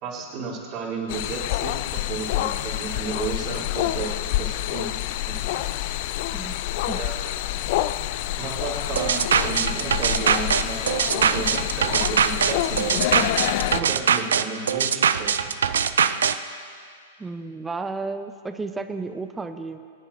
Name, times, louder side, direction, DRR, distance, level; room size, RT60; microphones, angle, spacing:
voice 1, 0.0-4.1 4.4-4.9 5.2-5.7 6.9-7.3 8.4-13.2 13.7-15.3, right 5 dB, 40° right, -5 dB, 3.2 m, -33 dB
sound 1, 1.1-13.8, left 14 dB, 50° left, 0.4 m, -27 dB
sound 2, 9.0-16.4, right 7 dB, 70° right, 0.5 m, -22 dB
voice 2, 17.2-19.8, right 3 dB, 10° right, 8 dB, 0.8 m, -32 dB
25.0 x 10.5 x 2.7 m, 2.1 s
figure-of-eight pair, 105°, 0 cm